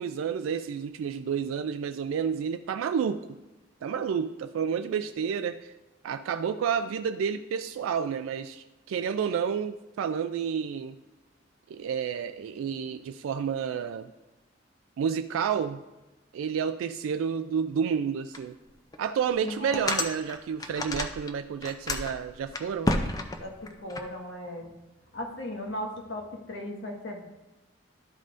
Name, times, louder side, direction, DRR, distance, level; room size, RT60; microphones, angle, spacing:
voice 1, 0.0-3.4 3.8-5.7 6.0-11.0 11.7-14.1 15.0-15.8 16.3-18.6 19.0-23.0, right 7 dB, 85° right, 9 dB, 0.3 m, -30 dB
sound 1, 18.3-18.4 18.9-19.0 19.5-21.3 21.6-24.0, left 2 dB, 20° left, 0.4 m, -30 dB
voice 2, 19.4-19.8 23.4-24.7 25.1-27.3, left 1 dB, 65° left, 0 dB, 1.5 m, -37 dB
12.5 x 5.4 x 2.6 m, 1.1 s
head